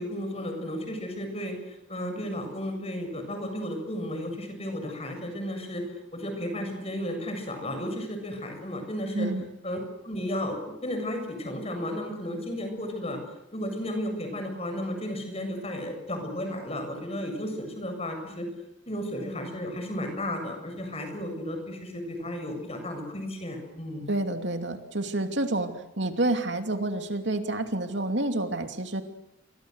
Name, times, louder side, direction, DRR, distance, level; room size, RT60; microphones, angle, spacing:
voice 1, 0.0-9.3 9.6-9.8 10.0-13.2 13.5-18.5 18.9-24.1, left 1 dB, 30° left, 5 dB, 7.5 m, -33 dB
voice 2, 9.1-9.5 24.1-29.0, right 2 dB, 65° right, 6 dB, 2.7 m, -29 dB
29.5 x 23.5 x 8.2 m, 0.82 s
head